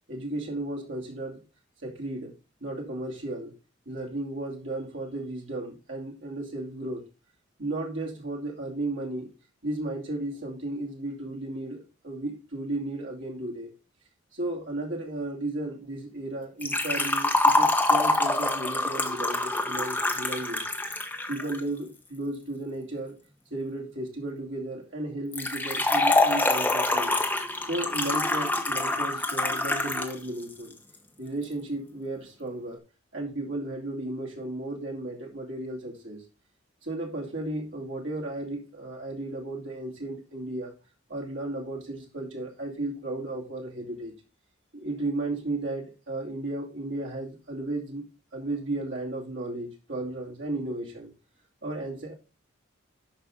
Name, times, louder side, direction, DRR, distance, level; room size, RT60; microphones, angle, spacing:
voice 1, 0.1-1.4 1.8-2.3 2.6-3.5 3.9-7.0 7.6-9.3 9.6-13.7 14.3-20.7 21.3-23.2 23.5-27.2 27.6-30.7 31.2-32.8 33.1-36.2 36.8-40.7 41.1-44.1 44.7-48.0 48.3-51.1 51.6-52.1, right 2 dB, 70° right, 2.6 m, -34 dB
Liquid, 16.6-21.6 25.3-30.1 30.4-30.5 31.4-31.5, left 2 dB, 10° left, 1.1 m, -25 dB
11.5 x 5.1 x 3.9 m
head